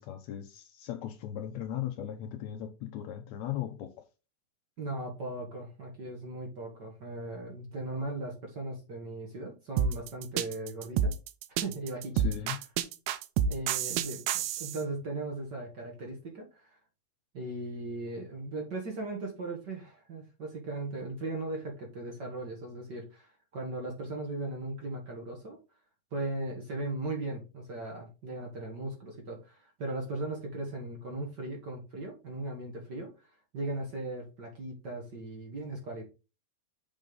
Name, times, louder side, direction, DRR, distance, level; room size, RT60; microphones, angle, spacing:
voice 1, 0.0-4.0 12.1-12.7, left 11 dB, 80° left, 1.6 m, -38 dB
voice 2, 4.8-11.1 11.6-12.2 13.5-16.8 17.3-25.6 26.1-33.3 33.5-36.0, right 2 dB, 50° right, 1.3 m, -38 dB
sound 1, 9.8-14.8, right 7 dB, 90° right, 2.5 m, -29 dB
6.8 x 5.2 x 3.9 m
omnidirectional pair, 4.1 m